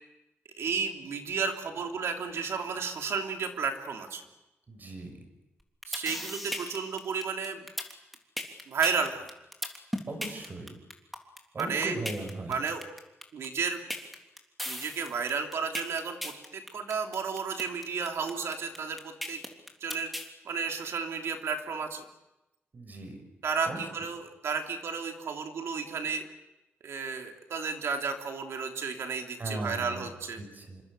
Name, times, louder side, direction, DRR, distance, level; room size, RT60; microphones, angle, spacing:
voice 1, 0.6-4.2 5.9-7.6 8.7-9.3 11.6-12.0 12.5-12.8 13.3-13.8 14.7-19.4 19.8-20.1 20.4-22.0 23.4-26.2 26.8-30.4, right 5 dB, 80° right, 3 dB, 3.3 m, -32 dB
voice 2, 4.7-5.1 10.1-10.7 11.5-12.6 22.7-23.2 23.6-23.8 29.4-30.1 30.4-30.8, right 2 dB, 45° right, 6 dB, 6.5 m, -38 dB
sound 1, 5.6-20.3, equal, ahead, 3.4 m, -37 dB
27.5 x 25.5 x 6.8 m, 0.97 s
cardioid pair, 100°, 4 cm